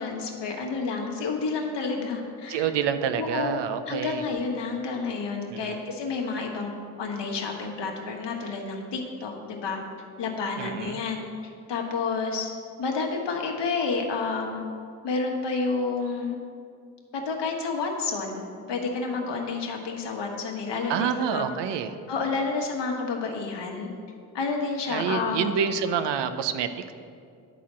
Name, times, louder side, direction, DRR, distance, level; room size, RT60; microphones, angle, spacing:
voice 1, 0.0-2.7 3.2-3.6 3.9-6.7 7.0-9.8 10.2-11.3 11.7-12.5 12.8-14.6 15.0-16.4 17.1-21.5 22.1-23.9 24.3-25.5, left 4 dB, 65° left, 1 dB, 1.5 m, -30 dB
voice 2, 2.5-4.2 5.5-5.8 10.6-11.0 20.9-21.9 24.9-26.9, right 7 dB, 65° right, 10 dB, 0.7 m, -27 dB
11.0 x 4.2 x 6.2 m, 2.3 s
hypercardioid pair, 50°, 45 cm